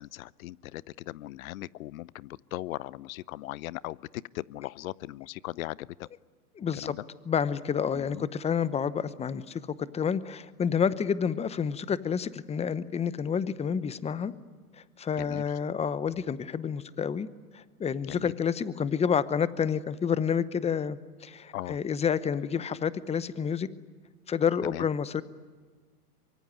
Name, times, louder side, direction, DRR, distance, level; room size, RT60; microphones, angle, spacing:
voice 1, 0.0-4.0 4.3-5.8 6.8-7.0 7.9-8.3 15.2-15.4 18.1-18.3 21.5-21.8 24.7-24.8, left 16 dB, 60° left, 22 dB, 0.7 m, -38 dB
voice 2, 6.5-6.9 7.2-9.6 9.9-14.3 15.0-17.3 17.5-23.7 24.3-25.2, left 7 dB, 15° left, 16 dB, 0.9 m, -29 dB
24.0 x 24.0 x 9.6 m, 1.5 s
hypercardioid pair, 110°, 46 cm